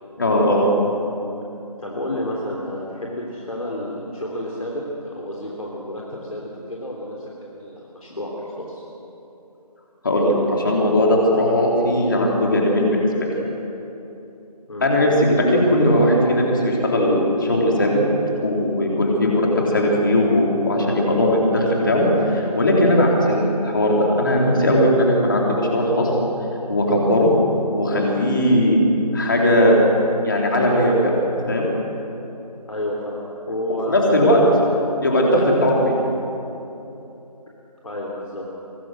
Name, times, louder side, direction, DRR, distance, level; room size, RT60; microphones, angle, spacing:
voice 1, 0.2-0.7 10.0-13.1 14.8-18.0 18.4-26.1 26.7-27.3 27.7-28.8 29.1-29.8 30.2-31.1 31.5-31.7 33.9-34.4 35.0-35.8, left 1 dB, 30° left, -2 dB, 3.8 m, -18 dB
voice 2, 1.8-7.2 7.4-8.8 14.7-14.9 32.7-35.1 35.4-35.8 37.8-38.5, left 1 dB, 60° left, -3 dB, 3.6 m, -30 dB
24.5 x 19.0 x 6.5 m, 2.9 s
figure-of-eight pair, 170°, 21 cm